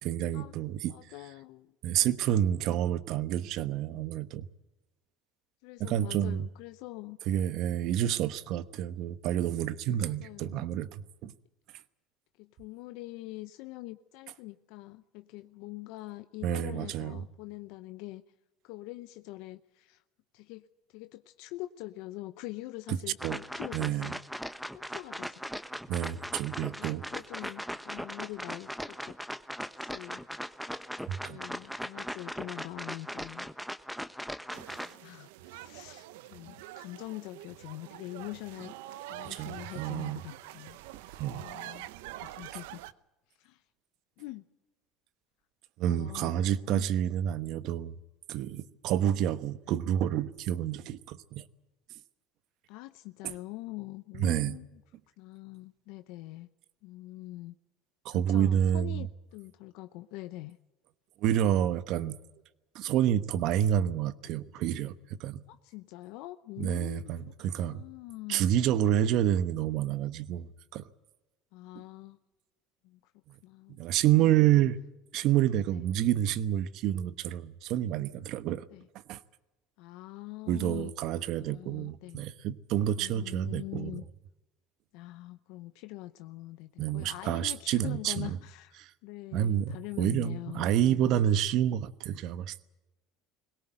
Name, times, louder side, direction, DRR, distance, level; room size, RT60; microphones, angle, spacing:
voice 1, 0.0-0.9 1.8-4.5 5.8-6.4 7.3-11.3 16.4-17.2 23.2-23.4 23.7-24.1 25.9-27.0 31.1-31.4 39.3-40.2 41.2-41.4 45.8-47.9 48.3-51.4 54.2-54.6 58.0-59.0 61.2-62.2 62.7-64.9 65.2-65.4 66.6-67.8 68.3-70.5 70.7-70.8 73.8-74.8 75.1-78.6 79.1-79.2 80.5-84.0 86.8-88.4 88.8-88.9 89.3-92.5, right 11 dB, 65° right, 1.1 m, -28 dB
voice 2, 0.9-1.7 5.6-7.2 10.0-10.7 12.4-18.2 18.6-20.0 20.3-24.2 24.7-25.4 26.7-29.2 29.8-30.2 30.6-30.9 31.3-33.5 34.8-38.7 39.1-40.8 41.2-41.9 42.2-42.8 43.4-43.6 44.2-44.4 45.9-46.9 49.0-49.1 52.7-54.8 55.2-56.5 56.8-57.5 58.1-60.6 65.5-68.5 71.5-72.2 72.8-73.1 73.4-73.8 74.1-74.7 75.7-75.8 78.7-78.9 79.8-80.9 81.3-82.2 83.0-84.0 84.9-91.2, left 18 dB, 75° left, 0.7 m, -44 dB
sound 1, 23.2-34.9, equal, ahead, 0.9 m, -39 dB
sound 2, 34.5-42.9, right 14 dB, 85° right, 0.8 m, -45 dB
21.0 x 18.0 x 8.9 m
supercardioid pair, 95°, 0 cm